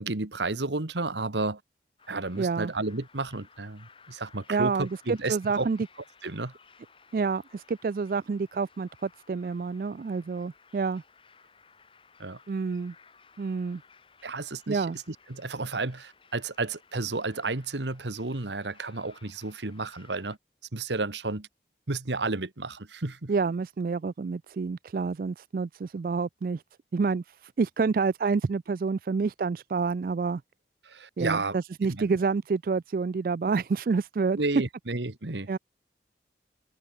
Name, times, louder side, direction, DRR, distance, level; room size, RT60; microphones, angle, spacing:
voice 1, 0.0-1.6 2.1-5.7 6.2-6.5 12.2-12.4 14.2-20.4 20.7-21.5 21.9-23.3 30.8-32.1 34.4-35.6, right 3 dB, 85° right, 1.6 m, -32 dB
sound 1, 2.0-20.4, left 5 dB, 30° left, 4.6 m, -59 dB
voice 2, 2.4-2.7 4.5-5.8 7.1-11.0 12.5-12.9 13.4-13.8 14.7-15.0 23.3-26.6 26.9-30.4 31.2-34.4 35.5-35.6, right 4 dB, 50° right, 0.3 m, -28 dB
head